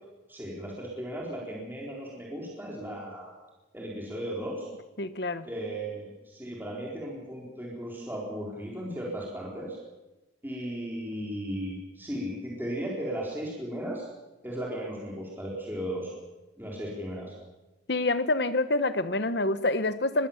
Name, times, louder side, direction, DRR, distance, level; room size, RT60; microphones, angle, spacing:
voice 1, 0.3-3.3 3.7-4.7 5.4-9.8 10.4-14.1 14.4-16.1 16.6-17.3, equal, 10° right, -4 dB, 4.0 m, -36 dB
voice 2, 5.0-5.5 17.9-20.3, left 2 dB, 60° left, 13 dB, 1.1 m, -27 dB
22.0 x 16.5 x 7.2 m, 1.1 s
head